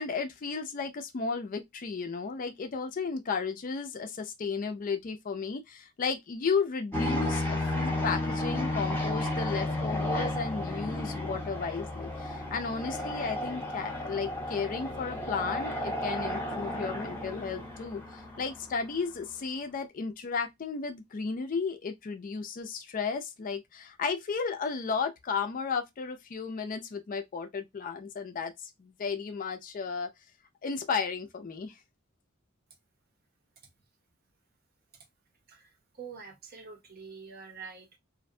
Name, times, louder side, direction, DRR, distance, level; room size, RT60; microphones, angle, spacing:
voice 1, 0.0-30.1 30.6-31.7, left 5 dB, 40° left, 0.4 m, -34 dB
sound 1, 6.9-19.0, left 1 dB, 10° left, 0.7 m, -33 dB
voice 2, 35.5-38.0, right 5 dB, 45° right, 0.7 m, -46 dB
2.5 x 2.1 x 2.6 m
head